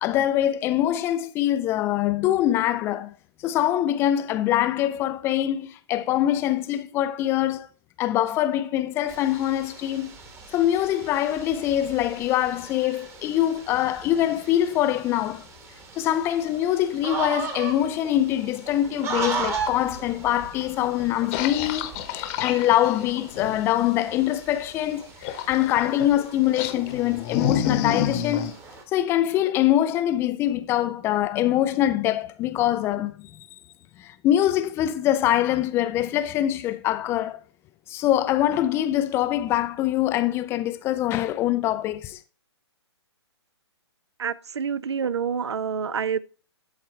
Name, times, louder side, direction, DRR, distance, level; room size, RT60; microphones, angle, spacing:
voice 1, 0.0-3.1 3.4-7.7 8.0-10.1 10.5-15.4 16.0-28.6 28.9-33.3 34.0-37.4 37.9-42.2, left 12 dB, 15° left, 0.3 m, -24 dB
sound 1, 9.1-28.8, right 4 dB, 15° right, 1.2 m, -38 dB
sound 2, 21.3-23.7 25.2-26.1 26.6-28.5, left 9 dB, 30° left, 0.9 m, -29 dB
voice 2, 44.2-46.2, right 7 dB, 75° right, 0.5 m, -27 dB
12.0 x 4.2 x 3.2 m
figure-of-eight pair, 125°, 14 cm